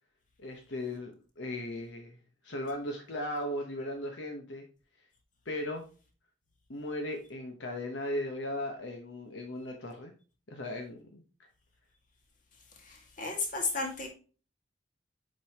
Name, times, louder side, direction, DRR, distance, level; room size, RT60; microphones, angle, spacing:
voice 1, 0.4-2.2 2.4-4.6 5.4-5.8 6.7-10.1 10.5-11.2, left 1 dB, 70° left, 3 dB, 1.0 m, -37 dB
voice 2, 12.8-14.1, left 3 dB, 40° left, 2 dB, 1.9 m, -33 dB
7.6 x 5.4 x 2.9 m, 0.37 s
head